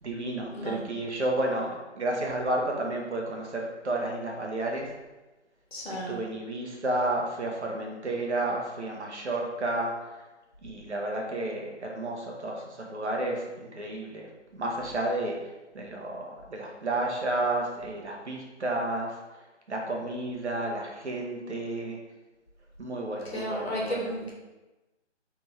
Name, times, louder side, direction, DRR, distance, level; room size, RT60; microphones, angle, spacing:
voice 1, 0.0-4.9 5.9-10.1 10.6-19.2 19.7-22.0 22.8-24.1, right 1 dB, 65° right, 0 dB, 1.1 m, -31 dB
voice 2, 5.7-6.2 23.3-24.3, equal, 55° left, -3 dB, 1.4 m, -33 dB
4.1 x 3.5 x 3.2 m, 1.1 s
figure-of-eight pair, 165°, 36 cm